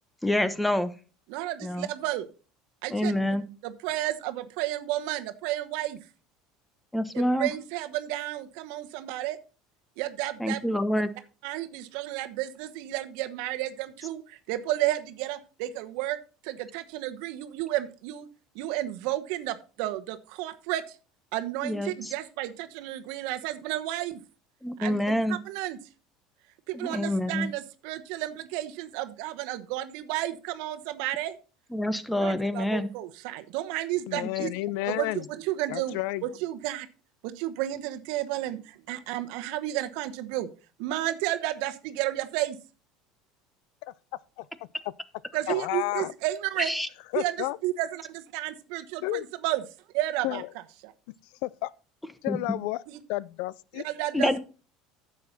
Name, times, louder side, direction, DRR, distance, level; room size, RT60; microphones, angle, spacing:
voice 1, 0.2-0.9 1.6-1.9 2.9-3.4 6.9-7.5 10.4-11.1 21.6-22.1 24.6-25.4 26.7-27.5 31.7-32.9 46.6-46.9 52.3-52.4 54.1-54.4, left 1 dB, 5° left, 1.0 m, -27 dB
voice 2, 1.3-2.3 2.8-3.1 3.6-6.0 7.1-9.4 10.0-10.6 11.4-16.2 16.4-18.3 18.5-21.0 21.3-24.2 24.8-25.8 26.7-31.4 32.2-34.5 34.9-36.9 37.2-40.5 40.8-42.6 45.3-46.7 47.1-47.4 47.6-49.6 49.9-50.4 50.8-50.9 52.9-53.0 53.8-54.4, right 15 dB, 75° right, 1.1 m, -32 dB
voice 3, 34.1-35.3 35.7-36.2 45.5-46.1 47.1-47.6 49.0-49.3 50.2-50.5 51.4-51.7 52.2-52.8 53.1-53.8, left 18 dB, 75° left, 0.4 m, -31 dB
10.5 x 7.2 x 4.2 m
supercardioid pair, 105°, 0 cm